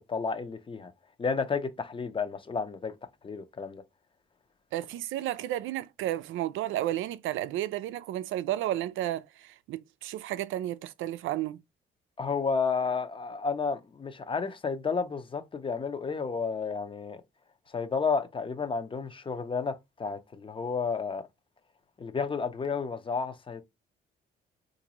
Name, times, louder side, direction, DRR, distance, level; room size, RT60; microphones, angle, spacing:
voice 1, 0.1-0.9 1.2-2.9 3.2-3.8 12.2-17.2 17.7-21.3 22.0-23.6, left 5 dB, 25° left, 0.6 m, -31 dB
voice 2, 4.7-11.6, right 13 dB, 80° right, 0.4 m, -32 dB
3.8 x 2.6 x 2.9 m
cardioid pair, 90°, 20 cm